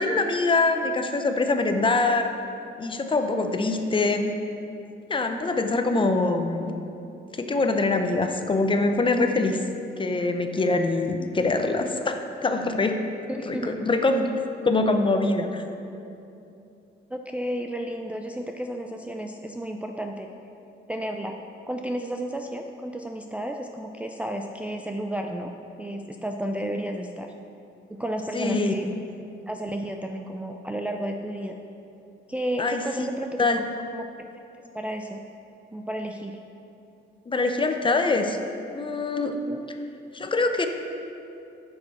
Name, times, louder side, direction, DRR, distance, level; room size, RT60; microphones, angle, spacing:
voice 1, 0.0-2.3 2.8-4.3 5.1-6.7 7.3-9.6 10.0-13.0 13.5-14.3 14.6-15.6 28.3-28.7 32.6-32.8 33.4-33.6 37.3-38.4 38.7-39.4 40.1-40.7, left 3 dB, 25° left, 6 dB, 0.7 m, -24 dB
voice 2, 13.3-13.8 17.1-20.3 20.9-21.3 21.7-25.5 25.8-27.3 27.9-28.9 29.5-31.6 32.3-33.5 33.9-34.1 34.7-35.2 35.7-36.4 39.3-39.7, right 1 dB, 5° right, 3 dB, 0.4 m, -32 dB
8.9 x 6.7 x 4.2 m, 2.7 s
cardioid pair, 90°, 20 cm